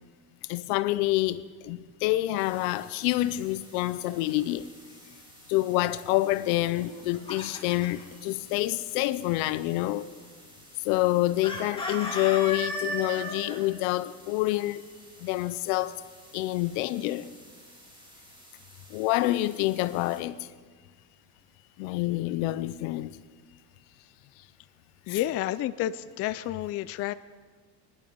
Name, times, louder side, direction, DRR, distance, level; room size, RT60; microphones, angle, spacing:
voice 1, 0.5-4.7 5.5-10.0 10.8-14.8 15.2-15.9 16.3-17.3 18.9-20.4 21.8-23.2 25.1-25.2, left 17 dB, 75° left, 0.8 m, -27 dB
sound 1, 2.4-20.2, right 1 dB, 10° right, 2.9 m, -54 dB
Chicken rooster, 6.8-8.0 11.4-13.6, left 1 dB, 10° left, 2.6 m, -34 dB
voice 2, 25.1-27.1, left 13 dB, 35° left, 0.4 m, -30 dB
22.5 x 11.0 x 5.3 m
cardioid pair, 130°, 43 cm